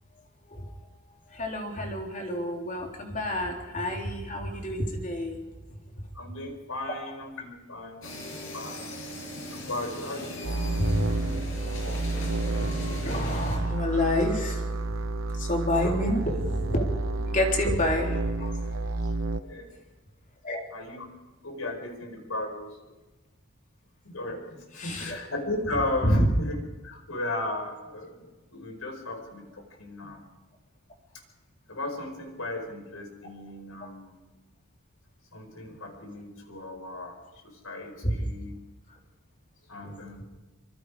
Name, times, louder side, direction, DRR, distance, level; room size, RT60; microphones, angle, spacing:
voice 1, 0.5-0.9 1.3-5.5 6.0-6.1 10.8-11.1 12.4-15.0 15.3-16.8 17.3-18.8 20.4-20.7 24.8-25.2 25.7-26.3 38.0-38.3 38.9-39.0 39.8-39.9 40.2-40.3, left 1 dB, 40° left, 1 dB, 3.6 m, -29 dB
voice 2, 6.1-9.0 9.5-10.6 10.9-11.3 15.8-16.2 19.4-19.7 20.7-21.2 21.4-22.8 24.0-26.6 26.8-30.3 31.7-34.2 35.3-37.2 37.4-38.5 39.7-40.2, left 2 dB, 85° left, 4 dB, 5.0 m, -36 dB
sound 1, 8.0-13.6, equal, 65° left, 6.3 m, -37 dB
sound 2, 10.4-19.4, right 2 dB, 75° right, 1.0 m, -30 dB
25.0 x 24.0 x 4.9 m, 1.2 s
head